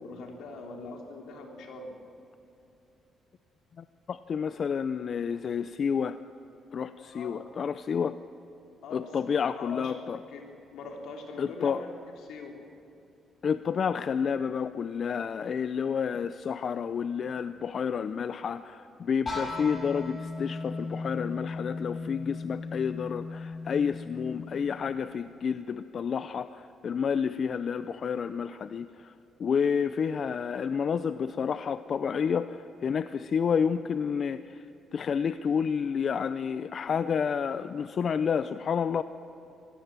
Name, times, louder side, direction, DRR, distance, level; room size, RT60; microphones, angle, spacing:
voice 1, 0.0-1.9 7.0-7.5 8.8-10.4 10.7-12.6, left 3 dB, 80° left, 1 dB, 3.6 m, -42 dB
voice 2, 3.8-6.2 6.7-8.2 8.9-10.2 11.4-11.8 13.4-29.1 29.4-34.6 34.9-39.0, left 6 dB, 50° left, 12 dB, 0.6 m, -30 dB
sound 1, 19.3-25.1, left 3 dB, 30° left, 5.2 m, -37 dB
24.5 x 17.0 x 7.5 m, 3.0 s
cardioid pair, 90°, 0 cm